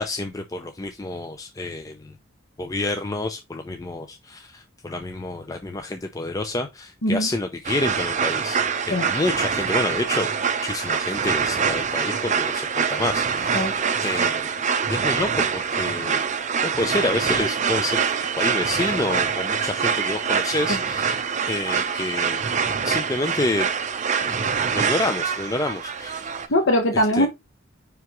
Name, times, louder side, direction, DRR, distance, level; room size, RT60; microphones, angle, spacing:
voice 1, 0.0-2.1 2.6-8.6 8.9-10.3 10.6-16.2 16.6-18.0 18.4-22.4 22.8-23.7 24.2-24.4 24.7-26.4 26.9-27.3, left 2 dB, 20° left, 0.5 m, -28 dB
voice 2, 7.0-7.3 8.9-9.1 13.5-13.7 20.7-20.8 26.5-27.3, equal, 65° left, 1.2 m, -21 dB
sound 1, 7.6-26.5, right 6 dB, 40° right, 0.6 m, -25 dB
9.4 x 3.5 x 3.0 m
head